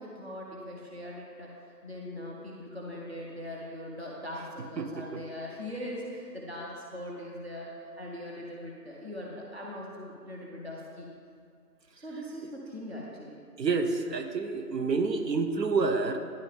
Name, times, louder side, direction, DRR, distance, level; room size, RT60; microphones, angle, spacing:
voice 1, 0.0-1.5 1.8-11.1 12.0-13.5, left 1 dB, 40° right, -3 dB, 0.9 m, -41 dB
voice 2, 4.8-5.2 13.6-16.2, right 4 dB, 80° right, 6 dB, 0.8 m, -28 dB
10.0 x 3.8 x 3.6 m, 2.2 s
figure-of-eight pair, 175°, 49 cm